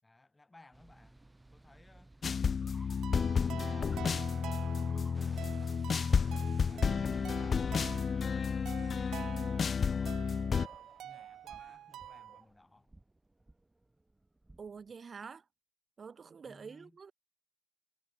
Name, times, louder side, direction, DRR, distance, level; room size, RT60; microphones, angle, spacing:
voice 1, 0.0-2.1 3.0-4.9 5.2-6.0 6.5-8.4 9.0-10.7 11.0-13.0 16.4-17.0, left 2 dB, 15° left, 7.9 m, -61 dB
sound 1, 0.7-14.9, right 2 dB, 15° right, 4.4 m, -58 dB
Float and Fly, 2.2-10.7, left 6 dB, 45° left, 0.6 m, -31 dB
sound 2, 3.0-12.4, right 11 dB, 75° right, 1.1 m, -47 dB
voice 2, 14.6-15.4 16.0-17.1, right 5 dB, 40° right, 1.4 m, -47 dB
cardioid pair, 90°, 0 cm